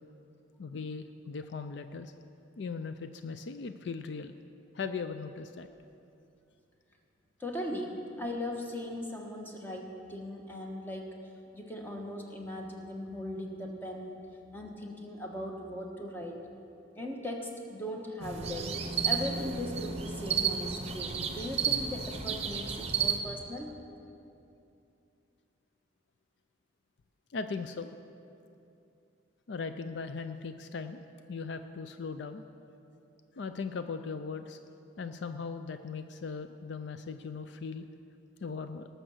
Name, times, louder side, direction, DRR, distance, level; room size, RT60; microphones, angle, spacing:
voice 1, 0.6-2.1 2.6-4.3 4.7-5.7 27.3-27.9 29.5-31.0 31.3-32.4 33.4-34.6 35.0-37.8 38.4-38.9, left 4 dB, 60° left, 9 dB, 0.4 m, -38 dB
voice 2, 7.4-11.2 11.5-14.3 14.5-16.5 16.9-18.7 19.0-23.7, left 1 dB, 10° left, 1 dB, 1.2 m, -39 dB
sound 1, 18.2-23.2, right 6 dB, 30° right, 0.8 m, -32 dB
19.0 x 6.7 x 6.3 m, 2.7 s
head